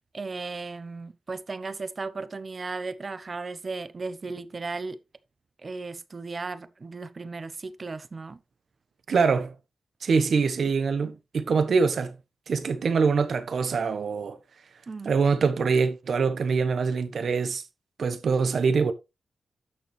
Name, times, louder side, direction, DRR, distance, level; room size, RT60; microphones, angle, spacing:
voice 1, 0.1-5.0 5.6-8.4 14.9-15.2, right 3 dB, 45° right, 0.9 m, -35 dB
voice 2, 9.1-9.5 10.0-12.1 12.5-14.4 15.0-17.6 18.0-18.9, right 5 dB, 70° right, 1.2 m, -24 dB
11.0 x 6.7 x 3.3 m
cardioid pair, 55°, 0 cm